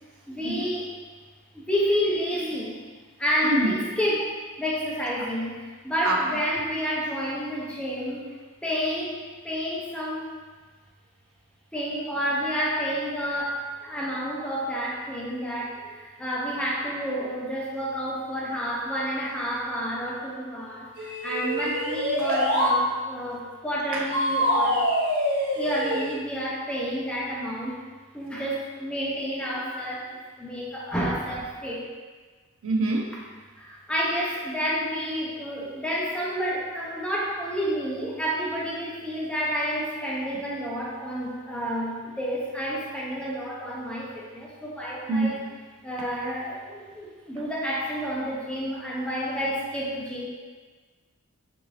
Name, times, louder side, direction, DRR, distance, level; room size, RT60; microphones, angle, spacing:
voice 1, 0.3-0.9 1.5-2.8 3.2-8.3 8.6-10.3 11.7-24.9 25.4-27.8 28.1-31.8 33.1-33.2 33.6-45.4 45.8-50.2, equal, 5° left, -5 dB, 0.5 m, -30 dB
sound 1, 21.0-22.8 24.1-26.2, equal, 45° right, 0.8 m, -25 dB
voice 2, 32.6-33.1 45.1-45.3, right 2 dB, 70° right, 1 dB, 0.5 m, -25 dB
3.8 x 2.6 x 3.1 m, 1.4 s
head